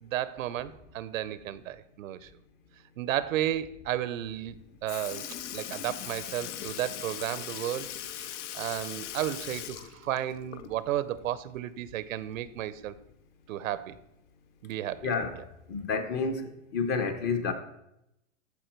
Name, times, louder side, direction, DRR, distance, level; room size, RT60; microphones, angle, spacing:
voice 1, 0.0-2.3 3.0-7.9 8.5-12.9 13.5-14.0 14.6-15.1, right 12 dB, 90° right, 16 dB, 0.7 m, -33 dB
Sink (filling or washing) / Liquid, 4.4-4.5 4.9-11.0 11.3-11.4 13.0-13.1 14.0-14.1 14.9-15.1 15.9-16.0, left 11 dB, 60° left, 0.7 m, -40 dB
voice 2, 15.0-15.3 15.7-17.5, left 5 dB, 25° left, 8 dB, 0.8 m, -29 dB
13.5 x 4.9 x 4.5 m, 0.83 s
supercardioid pair, 160°, 39 cm